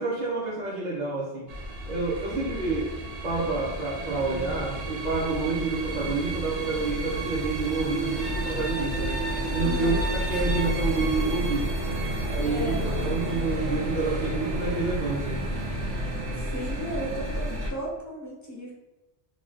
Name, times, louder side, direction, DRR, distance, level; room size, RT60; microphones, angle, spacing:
voice 1, 0.0-1.5 1.8-2.9 3.2-11.7 12.2-12.7 13.0-15.4, right 3 dB, 45° right, -6 dB, 0.7 m, -29 dB
sound 1, 1.5-17.7, right 1 dB, 75° right, 1.1 m, -30 dB
voice 2, 2.3-2.6 9.6-10.0 12.4-13.5 16.4-18.7, equal, 20° left, -4 dB, 0.5 m, -35 dB
3.2 x 2.3 x 3.9 m, 1.0 s
omnidirectional pair, 1.2 m